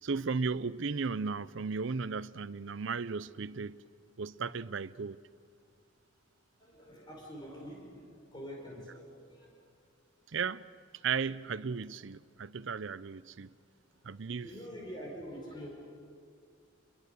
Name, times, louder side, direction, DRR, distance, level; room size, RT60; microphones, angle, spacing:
voice 1, 0.0-3.8 4.2-5.2 10.3-10.6 11.0-13.5 14.0-14.5, right 5 dB, 65° right, 0.6 m, -35 dB
voice 2, 6.6-9.5 14.1-15.7, equal, 20° left, 5.2 m, -46 dB
29.5 x 21.5 x 6.8 m
head